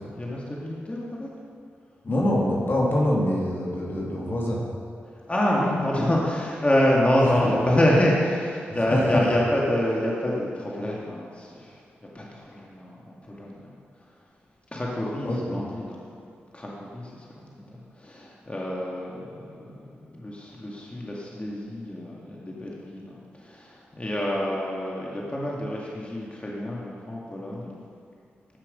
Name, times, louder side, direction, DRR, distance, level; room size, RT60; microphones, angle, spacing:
voice 1, 0.1-1.4 5.3-11.8 12.1-13.7 14.7-16.0 16.5-27.7, left 1 dB, 25° left, -4 dB, 2.2 m, -27 dB
voice 2, 2.0-4.6 7.2-7.6 8.9-9.3 15.2-15.6, left 1 dB, 50° left, -4 dB, 2.5 m, -25 dB
14.5 x 6.0 x 5.4 m, 2.5 s
cardioid pair, 45°, 5 cm